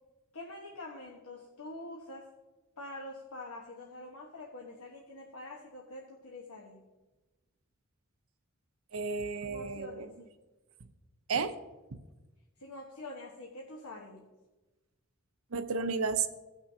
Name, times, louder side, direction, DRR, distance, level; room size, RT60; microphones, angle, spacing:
voice 1, 0.3-2.3 2.8-6.8 9.4-10.3 12.6-14.2, left 2 dB, 85° left, -2 dB, 1.2 m, -45 dB
voice 2, 8.9-10.1 11.3-11.5 11.9-12.0 15.5-16.3, right 5 dB, 70° right, 9 dB, 0.7 m, -32 dB
17.5 x 6.0 x 2.8 m, 1.1 s
head